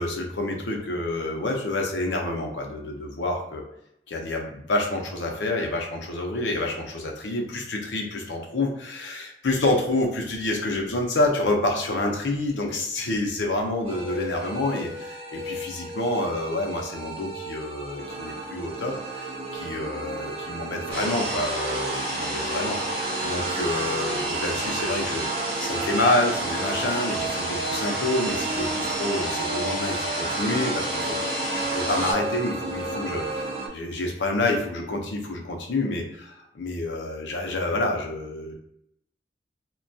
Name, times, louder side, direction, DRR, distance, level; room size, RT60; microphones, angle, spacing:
voice 1, 0.0-3.6 4.1-38.5, left 2 dB, 90° left, 2 dB, 0.6 m, -28 dB
sound 1, 13.8-33.7, right 2 dB, 35° right, 0.3 m, -33 dB
sound 2, 20.9-32.1, right 2 dB, 60° right, 1.1 m, -30 dB
2.2 x 2.2 x 2.6 m, 0.77 s
head